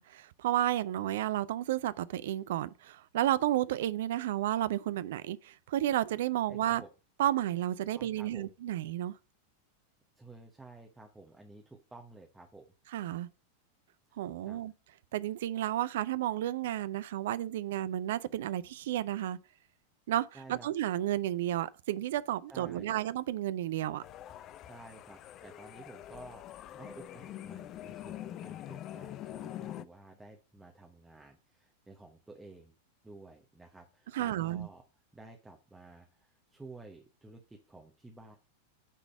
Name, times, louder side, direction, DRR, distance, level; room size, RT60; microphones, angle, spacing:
voice 1, 0.0-6.8 7.2-9.1 12.9-13.3 14.2-14.7 15.1-19.4 20.1-24.0 34.1-34.7, right 13 dB, 55° right, 0.4 m, -32 dB
voice 2, 6.5-6.9 7.9-8.5 10.2-12.6 14.4-14.6 20.3-20.7 22.5-23.0 24.6-32.7 33.0-34.8 35.1-38.4, right 2 dB, 10° right, 1.1 m, -52 dB
sound 1, 24.0-29.8, left 12 dB, 35° left, 0.4 m, -44 dB
9.1 x 4.0 x 5.3 m
figure-of-eight pair, 90°, 0 cm